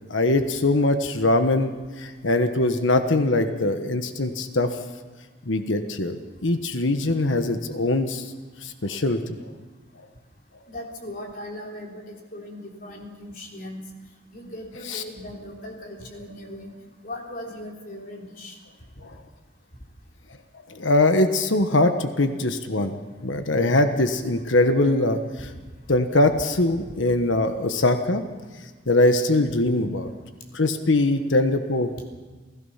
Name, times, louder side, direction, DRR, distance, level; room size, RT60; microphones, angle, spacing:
voice 1, 0.1-4.7 5.5-8.3 8.6-9.4 14.9-15.0 19.0-19.1 20.7-23.0 23.2-25.5 25.9-28.3 28.9-30.1 30.5-32.0, left 2 dB, 70° left, 7 dB, 1.3 m, -22 dB
voice 2, 10.7-13.8 14.3-16.7 17.0-18.6 26.9-27.0, left 1 dB, 45° left, 0 dB, 3.5 m, -38 dB
28.5 x 16.5 x 5.8 m, 1.3 s
head